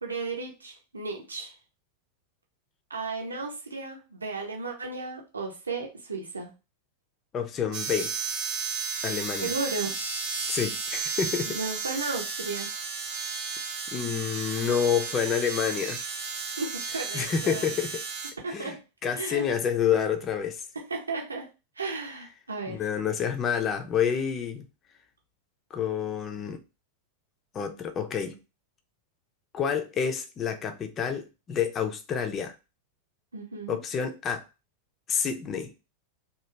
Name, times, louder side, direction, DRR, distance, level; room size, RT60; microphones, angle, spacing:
voice 1, 0.0-1.6 2.9-6.5 9.4-10.0 11.5-12.7 16.6-17.8 18.4-18.8 19.1-19.5 20.7-21.5 21.8-22.8 33.3-33.8, right 3 dB, 75° right, 0.8 m, -34 dB
voice 2, 7.3-8.1 9.0-9.5 10.5-11.6 13.9-16.0 17.1-17.9 18.5-18.8 19.0-20.7 22.7-24.6 25.7-26.6 27.5-28.4 29.5-32.5 33.7-34.4 35.1-35.7, left 7 dB, 25° left, 0.5 m, -28 dB
sound 1, 7.7-18.3, right 5 dB, 45° right, 0.6 m, -33 dB
2.9 x 2.3 x 3.2 m
figure-of-eight pair, 90°, 0 cm